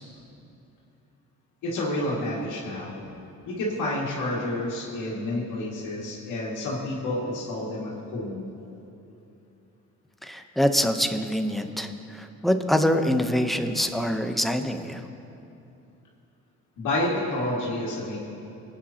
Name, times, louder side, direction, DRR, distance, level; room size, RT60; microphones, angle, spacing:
voice 1, 1.6-3.0 3.5-8.5 16.8-18.2, left 1 dB, 85° left, -5 dB, 2.2 m, -29 dB
voice 2, 10.2-15.0, equal, ahead, 5 dB, 0.9 m, -25 dB
23.0 x 9.0 x 2.9 m, 2.8 s
cardioid pair, 90°, 30 cm